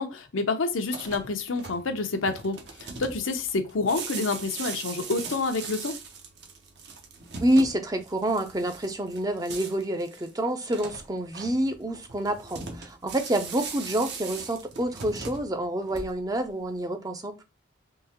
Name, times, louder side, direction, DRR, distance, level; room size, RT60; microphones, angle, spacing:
voice 1, 0.0-5.9, left 3 dB, 90° left, 0.7 m, -28 dB
sound 1, 0.8-16.4, right 4 dB, 55° right, 0.8 m, -40 dB
voice 2, 7.4-17.4, right 1 dB, 20° right, 0.5 m, -28 dB
3.8 x 2.9 x 2.8 m
head